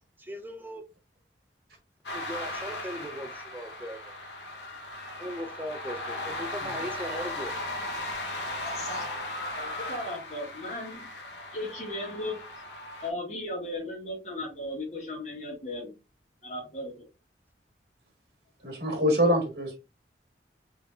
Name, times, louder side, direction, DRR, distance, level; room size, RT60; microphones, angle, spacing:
voice 1, 0.2-0.8 2.1-4.0 5.2-7.5, equal, 10° right, 0.6 m, -38 dB
sound 1, 2.1-13.1, left 1 dB, 80° left, 1.0 m, -37 dB
voice 2, 8.6-9.0 9.5-11.1 11.5-12.4 13.0-15.9 16.4-17.0, left 1 dB, 40° left, 1.6 m, -36 dB
voice 3, 18.6-19.8, equal, 60° right, 1.5 m, -25 dB
5.1 x 3.2 x 2.4 m
head